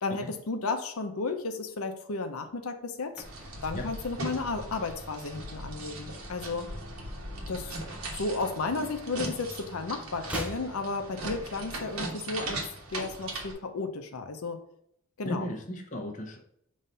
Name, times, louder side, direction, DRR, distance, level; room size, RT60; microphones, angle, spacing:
voice 1, 0.0-3.2 3.6-6.7 7.5-7.8 8.2-12.6 12.9-14.6 15.2-15.5, left 3 dB, 80° left, 6 dB, 0.7 m, -33 dB
sound 1, 2.8-5.4 5.7-6.0 6.3-7.7 8.0-9.4 9.6-11.7 12.0-12.1, equal, 5° right, 0.6 m, -45 dB
sound 2, 3.2-13.5, right 2 dB, 80° right, 1.3 m, -39 dB
voice 2, 15.2-16.4, left 1 dB, 35° left, 1 dB, 0.9 m, -36 dB
5.5 x 3.1 x 5.4 m, 0.71 s
head